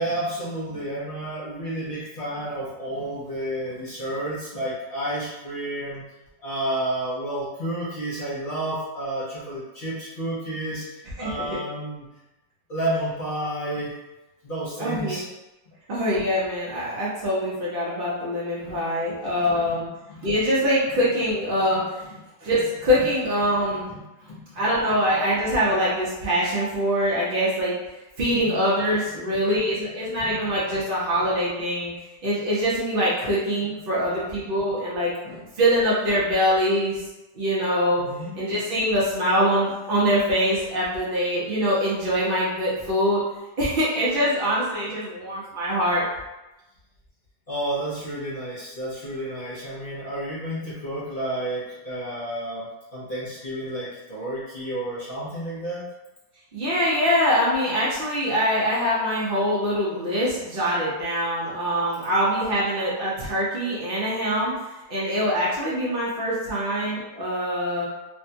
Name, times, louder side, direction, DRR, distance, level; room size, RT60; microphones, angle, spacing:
voice 1, 0.0-6.0 6.4-12.1 12.7-13.9 14.4-15.3 18.6-18.8 19.3-20.3 21.7-21.9 23.9-24.6 28.2-28.5 30.2-30.4 35.2-35.4 38.0-38.3 47.5-55.9, right 1 dB, 60° left, -8 dB, 0.5 m, -31 dB
voice 2, 14.8-15.2 15.9-19.9 20.2-22.0 22.4-23.9 24.5-27.7 28.2-31.9 32.2-35.1 35.6-37.0 37.3-38.0 38.3-43.2 43.6-46.1 56.5-64.5 64.9-67.8, equal, 60° right, -8 dB, 0.6 m, -24 dB
3.4 x 2.2 x 2.7 m, 1.0 s
omnidirectional pair, 1.9 m